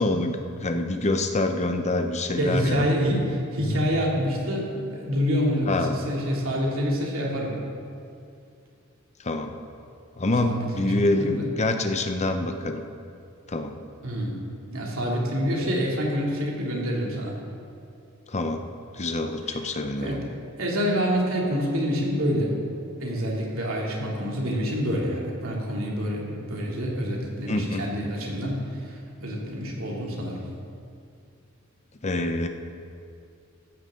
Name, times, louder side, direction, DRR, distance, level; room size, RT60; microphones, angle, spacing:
voice 1, 0.0-2.9 5.7-6.0 9.2-9.6 10.2-12.8 13.5-13.8 18.3-18.6 18.9-20.2 27.5-27.8 32.0-32.5, left 2 dB, 35° left, 6 dB, 0.8 m, -26 dB
voice 2, 2.4-7.6 10.4-11.4 14.0-14.4 14.7-17.4 19.5-19.6 20.0-20.2 20.6-22.6 23.0-30.4, equal, 75° right, -3 dB, 2.9 m, -27 dB
15.0 x 14.0 x 3.8 m, 2.4 s
head